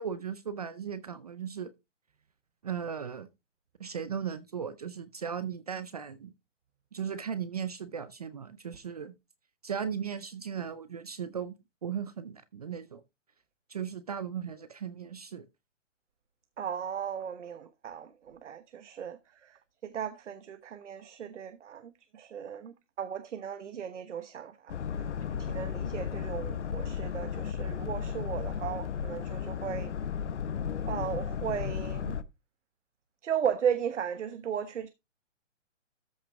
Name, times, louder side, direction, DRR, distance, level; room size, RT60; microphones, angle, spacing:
voice 1, 0.0-1.7 2.6-3.3 3.8-6.3 6.9-9.1 9.6-11.5 11.8-13.0 13.7-15.4, right 7 dB, 30° right, 0.5 m, -37 dB
voice 2, 16.6-29.9 30.9-32.2 33.2-34.9, right 8 dB, 70° right, 1.2 m, -36 dB
Boat Water vehicle, 24.7-32.2, left 7 dB, 65° left, 1.0 m, -34 dB
13.5 x 6.0 x 3.5 m
hypercardioid pair, 165°, 37 cm